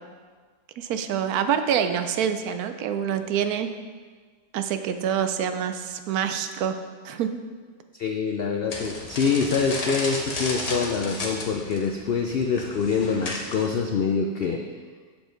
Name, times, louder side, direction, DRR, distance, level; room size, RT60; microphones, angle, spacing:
voice 1, 0.8-3.7 4.5-6.8 7.0-7.3, right 8 dB, 80° right, 9 dB, 1.1 m, -26 dB
voice 2, 7.9-14.6, left 5 dB, 90° left, 3 dB, 0.5 m, -25 dB
sound 1, 8.7-13.8, left 2 dB, 30° left, 0.8 m, -33 dB
7.2 x 6.9 x 3.9 m, 1.5 s
omnidirectional pair, 1.6 m